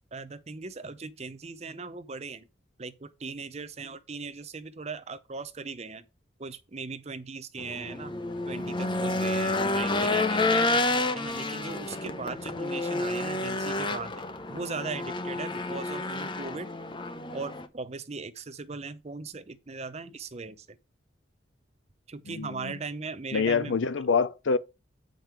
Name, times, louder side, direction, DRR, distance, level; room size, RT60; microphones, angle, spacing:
voice 1, 0.1-2.5 2.8-6.1 6.4-8.1 8.5-10.9 11.2-14.1 14.5-16.7 17.3-20.8 22.1-23.8, right 4 dB, 35° right, 0.7 m, -38 dB
Race car auto racing / Engine, 7.6-17.7, left 2 dB, 25° left, 0.6 m, -29 dB
voice 2, 22.3-22.7 23.3-24.6, left 5 dB, 80° left, 0.6 m, -26 dB
7.6 x 5.2 x 4.6 m
head